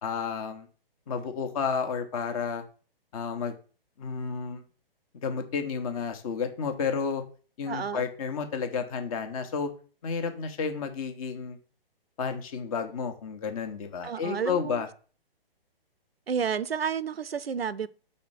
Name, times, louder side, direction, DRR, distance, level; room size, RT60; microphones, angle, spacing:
voice 1, 0.0-0.7 1.1-2.6 3.1-3.6 4.0-4.6 5.2-7.2 7.6-9.7 10.0-11.6 12.2-14.9, left 6 dB, 35° left, 1.2 m, -31 dB
voice 2, 7.7-8.1 14.0-14.8 16.3-17.9, right 7 dB, 85° right, 0.6 m, -31 dB
5.4 x 4.2 x 5.7 m
figure-of-eight pair, 130°, 30 cm